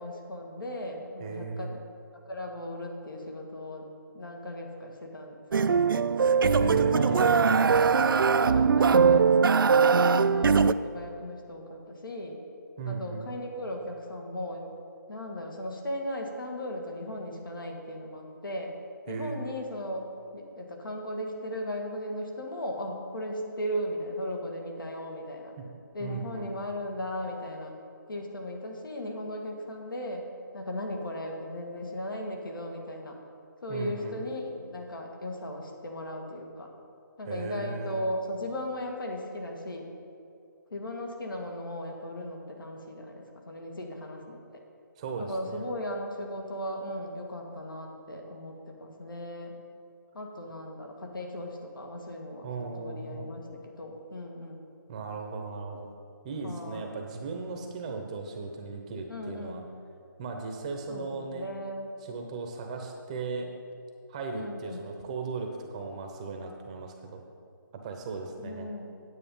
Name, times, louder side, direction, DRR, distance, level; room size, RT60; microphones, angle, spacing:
voice 1, 0.0-1.8 2.3-3.9 4.1-5.8 6.6-7.2 7.7-9.3 9.8-12.4 12.9-14.7 15.1-18.7 19.1-20.1 20.3-25.6 25.9-27.7 28.1-30.3 30.5-33.2 33.6-36.7 37.2-39.9 40.7-44.4 45.2-49.5 50.1-54.7 56.4-56.9 59.1-59.6 60.9-61.9 64.3-64.9 68.4-69.0, left 1 dB, 75° left, 2 dB, 1.9 m, -37 dB
voice 2, 1.2-1.7 6.5-7.5 12.8-13.3 19.1-19.4 25.6-25.7 26.0-26.5 33.7-34.2 37.3-38.0 45.0-45.7 52.4-53.3 54.9-55.9 56.2-59.6 60.2-61.5 62.0-63.5 64.1-67.2 67.7-68.7, right 4 dB, 20° right, 3 dB, 0.7 m, -37 dB
sound 1, 5.5-10.7, right 5 dB, 85° right, 0.4 m, -21 dB
9.3 x 8.1 x 5.4 m, 2.5 s
hypercardioid pair, 165°, 11 cm